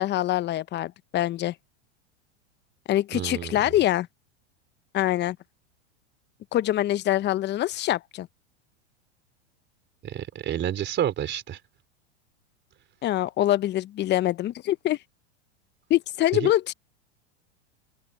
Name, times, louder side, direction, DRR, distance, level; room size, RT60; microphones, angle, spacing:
voice 1, 0.0-1.5 2.9-4.1 4.9-5.4 6.5-8.3 13.0-15.0 15.9-16.7, left 14 dB, 30° left, 0.9 m, -24 dB
voice 2, 3.1-3.5 10.0-11.6 16.4-16.5, right 10 dB, 35° right, 4.1 m, -29 dB
open air
hypercardioid pair, 105°, 34 cm